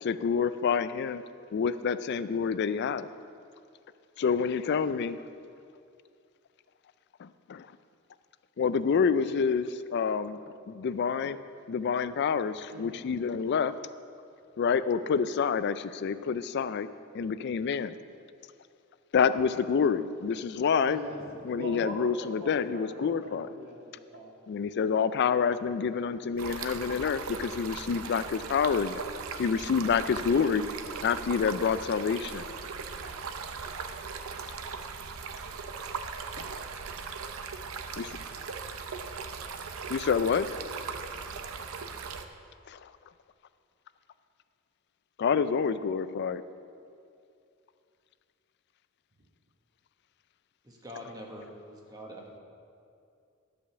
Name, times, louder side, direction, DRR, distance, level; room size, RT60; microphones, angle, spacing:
voice 1, 0.0-1.2 1.5-3.1 4.2-5.2 7.2-7.7 8.6-10.4 10.7-11.4 11.7-13.7 14.6-16.9 17.1-18.0 19.1-21.0 21.5-23.5 24.5-29.0 29.4-30.6 31.0-32.5 36.4-36.5 38.0-38.1 39.9-40.5 42.7-42.9 45.2-46.4, left 6 dB, 55° left, 14 dB, 0.3 m, -28 dB
voice 2, 12.7-13.0 20.8-24.3, equal, 50° right, -2 dB, 1.8 m, -41 dB
Stream, 26.4-42.3, right 5 dB, 90° right, 0.6 m, -39 dB
voice 3, 50.6-52.2, equal, 20° right, -1 dB, 1.3 m, -44 dB
11.5 x 5.1 x 6.9 m, 2.5 s
head